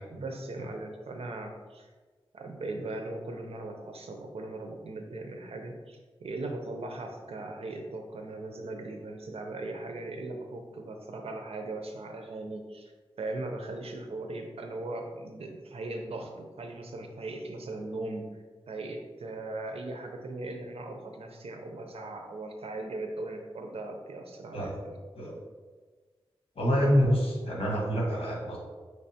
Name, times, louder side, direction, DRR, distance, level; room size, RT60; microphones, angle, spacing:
voice 1, 0.1-1.9 2.3-12.9 13.2-18.2 18.7-25.0, right 2 dB, 85° right, 3 dB, 0.6 m, -39 dB
voice 2, 26.5-28.6, equal, 70° left, -2 dB, 1.2 m, -26 dB
5.4 x 3.2 x 2.8 m, 1.4 s
wide cardioid pair, 100°, 10 cm